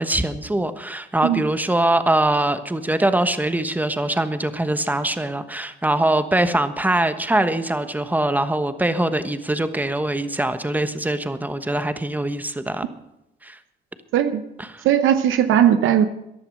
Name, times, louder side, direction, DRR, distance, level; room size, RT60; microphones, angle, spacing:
voice 1, 0.0-12.8 13.4-13.6 14.6-14.8, right 1 dB, 10° right, 10 dB, 1.2 m, -22 dB
voice 2, 14.8-16.1, right 10 dB, 85° right, 10 dB, 0.9 m, -17 dB
14.5 x 11.0 x 6.4 m, 0.90 s
cardioid pair, 90°, 20 cm